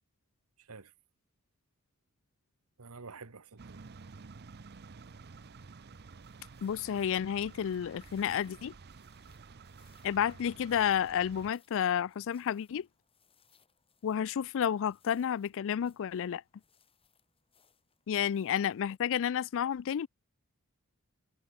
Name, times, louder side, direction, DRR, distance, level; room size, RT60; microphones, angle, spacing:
voice 1, 2.8-3.8, right 4 dB, 75° right, 1.3 m, -48 dB
sound 1, 3.6-11.5, right 4 dB, 50° right, 0.7 m, -51 dB
sound 2, 5.9-19.0, left 7 dB, 25° left, 6.4 m, -71 dB
voice 2, 6.6-8.7 10.0-12.9 14.0-16.4 18.1-20.1, left 9 dB, 60° left, 0.3 m, -31 dB
head